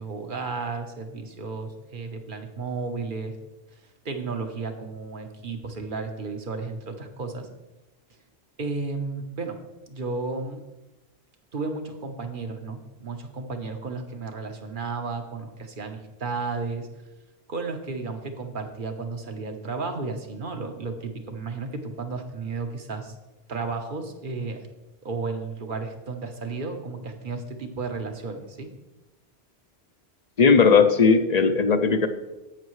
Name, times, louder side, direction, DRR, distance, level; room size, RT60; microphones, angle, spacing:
voice 1, 0.0-3.3 4.0-7.5 8.6-9.6 9.9-10.6 11.5-16.9 17.5-23.2 23.5-24.6 25.0-28.7, right 4 dB, 55° right, 5 dB, 1.2 m, -33 dB
voice 2, 30.4-32.1, left 5 dB, 45° left, 9 dB, 0.6 m, -17 dB
10.5 x 8.3 x 3.2 m, 1.0 s
omnidirectional pair, 1.1 m